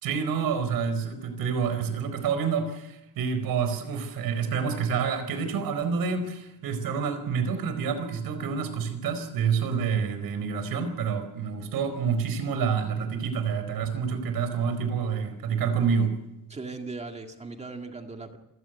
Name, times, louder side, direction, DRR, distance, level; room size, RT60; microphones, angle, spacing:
voice 1, 0.0-16.2, right 6 dB, 65° right, 9 dB, 4.6 m, -28 dB
voice 2, 16.5-18.4, right 3 dB, 15° right, 4 dB, 2.0 m, -38 dB
27.5 x 16.0 x 8.0 m, 0.91 s
cardioid pair, 175°, 38 cm